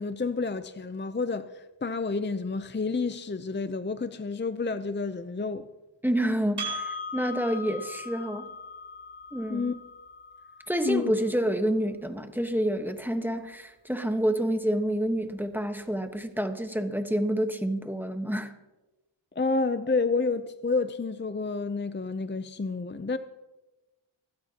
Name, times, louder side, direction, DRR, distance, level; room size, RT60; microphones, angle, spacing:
voice 1, 0.0-5.7 9.5-9.7 10.8-11.1 19.4-23.2, left 4 dB, 25° left, 0.6 m, -29 dB
voice 2, 6.0-8.5 9.3-9.8 10.7-18.6, right 1 dB, 5° right, 1.3 m, -28 dB
Percussion, 6.6-11.4, left 1 dB, 55° right, 6.3 m, -39 dB
25.0 x 13.0 x 2.9 m
wide cardioid pair, 65°, 49 cm